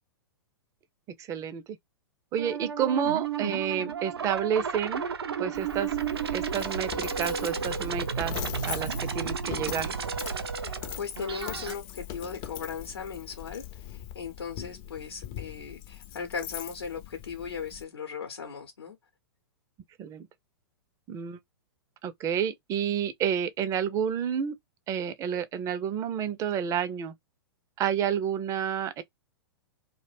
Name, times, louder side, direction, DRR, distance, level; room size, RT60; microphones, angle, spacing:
voice 1, 1.2-1.8 2.3-5.0 5.4-5.9 6.3-8.4 8.6-9.9 20.0-20.3 21.1-21.4 22.0-24.5 24.9-27.1 27.8-29.0, right 8 dB, 25° right, 0.4 m, -30 dB
sound 1, 2.4-11.7, right 6 dB, 85° right, 0.5 m, -33 dB
Coin (dropping), 5.5-17.8, left 11 dB, 40° left, 0.5 m, -41 dB
voice 2, 10.5-19.0, left 6 dB, 80° left, 0.8 m, -38 dB
2.4 x 2.1 x 3.2 m
hypercardioid pair, 110°, 13 cm